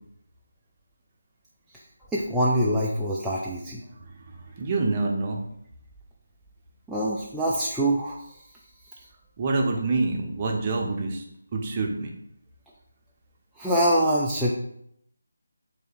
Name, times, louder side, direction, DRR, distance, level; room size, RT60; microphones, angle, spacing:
voice 1, 2.1-3.8 6.9-8.2 13.6-14.5, right 1 dB, 5° right, -8 dB, 0.3 m, -24 dB
voice 2, 4.0-5.4 9.4-11.2 11.5-12.1, right 3 dB, 30° right, 1 dB, 0.7 m, -27 dB
3.8 x 2.8 x 4.1 m, 0.73 s
figure-of-eight pair, 160°, 0 cm